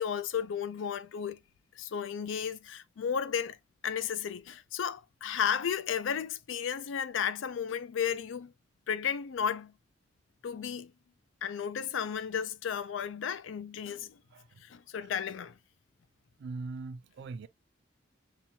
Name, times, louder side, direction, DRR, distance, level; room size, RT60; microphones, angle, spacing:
voice 1, 0.0-1.4 1.8-3.6 3.8-8.5 8.9-9.7 10.4-10.9 11.4-14.2 14.6-15.6, left 7 dB, 70° left, 0.4 m, -33 dB
voice 2, 14.3-14.6 16.4-17.5, right 3 dB, 60° right, 0.4 m, -41 dB
5.6 x 2.3 x 2.7 m
head